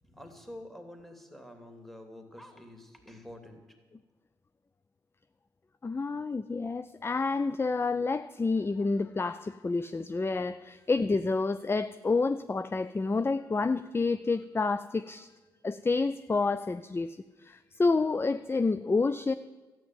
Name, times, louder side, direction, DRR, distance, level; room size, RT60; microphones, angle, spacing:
voice 1, 0.0-3.6, left 1 dB, ahead, 5 dB, 3.0 m, -48 dB
voice 2, 5.8-15.3 15.6-19.3, left 3 dB, 20° left, 14 dB, 0.5 m, -29 dB
13.0 x 9.2 x 9.3 m, 1.3 s
hypercardioid pair, 45°, 11 cm